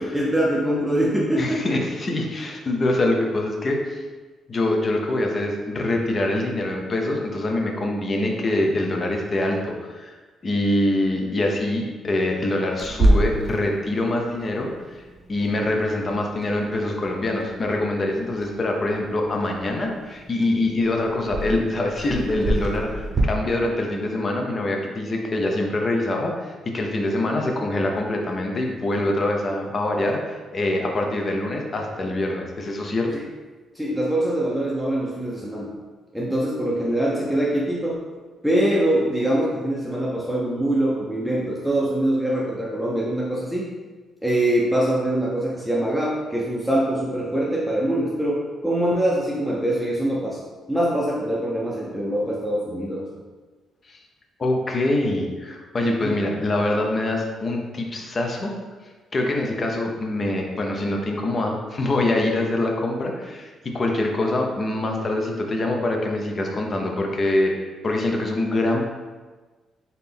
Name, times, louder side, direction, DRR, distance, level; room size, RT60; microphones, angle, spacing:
voice 1, 0.1-1.7 33.7-35.7 36.1-38.1 38.4-43.7 44.2-50.4 50.7-53.1 55.8-56.1, right 1 dB, ahead, -5 dB, 0.6 m, -23 dB
voice 2, 1.4-4.0 4.5-10.2 10.4-15.0 15.3-33.1 53.9-54.0 54.4-58.5 59.1-67.5 67.8-68.8, left 1 dB, 40° left, 1 dB, 0.7 m, -24 dB
Clock, 12.8-23.2, right 1 dB, 40° right, 0.8 m, -28 dB
4.1 x 2.8 x 3.5 m, 1.3 s
cardioid pair, 90°, 0 cm